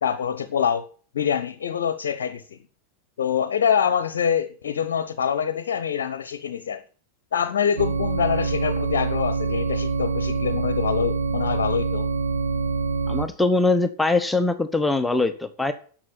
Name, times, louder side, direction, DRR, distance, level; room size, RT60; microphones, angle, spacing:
voice 1, 0.0-0.9 1.1-2.6 3.2-6.8 7.3-12.1, left 8 dB, 60° left, 0.9 m, -25 dB
sound 1, 7.8-13.3, right 4 dB, 75° right, 1.6 m, -25 dB
voice 2, 13.1-15.7, left 2 dB, 5° left, 1.2 m, -22 dB
11.0 x 7.6 x 8.7 m
figure-of-eight pair, 90°, 0 cm